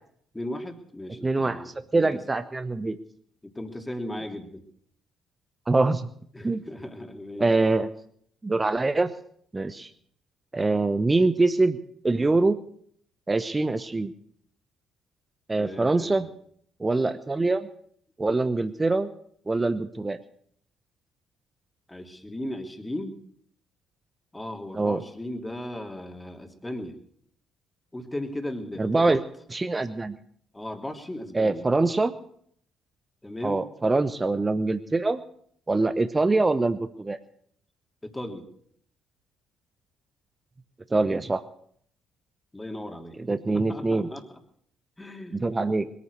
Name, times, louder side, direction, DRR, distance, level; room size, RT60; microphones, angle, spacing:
voice 1, 0.3-2.2 3.4-4.6 6.3-7.5 15.5-16.3 21.9-23.2 24.3-27.0 27.9-29.2 30.5-31.7 33.2-33.7 38.0-38.5 42.5-44.4 45.0-45.5, left 1 dB, 15° left, 4 dB, 2.7 m, -37 dB
voice 2, 1.2-1.6 1.9-3.0 5.7-6.1 6.4-6.6 7.4-7.9 8.4-9.1 9.5-9.9 10.5-11.8 12.0-12.6 13.3-14.1 15.5-16.3 16.8-17.7 18.2-19.1 19.5-20.2 24.7-25.0 28.8-29.2 29.5-30.2 31.3-32.1 33.4-35.2 35.7-37.2 40.9-41.4 43.3-44.1 45.4-45.9, right 3 dB, 25° right, 11 dB, 0.9 m, -24 dB
21.0 x 9.6 x 6.6 m, 0.64 s
hypercardioid pair, 50°, 0 cm